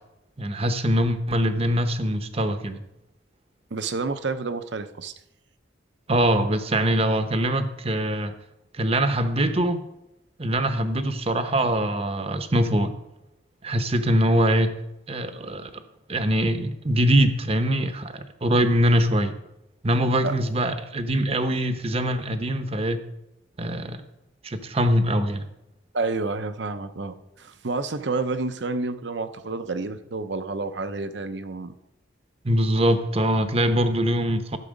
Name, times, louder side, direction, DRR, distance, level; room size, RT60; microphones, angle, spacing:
voice 1, 0.4-2.8 6.1-8.3 8.7-9.8 10.4-12.9 13.6-14.7 15.1-15.8 16.1-19.4 19.8-23.0 23.6-24.0 24.4-25.4 32.4-34.6, right 1 dB, 35° right, 9 dB, 0.8 m, -23 dB
voice 2, 3.7-5.1 20.2-20.3 25.9-31.7, right 3 dB, 70° right, 10 dB, 0.7 m, -29 dB
12.5 x 7.0 x 5.2 m, 0.86 s
head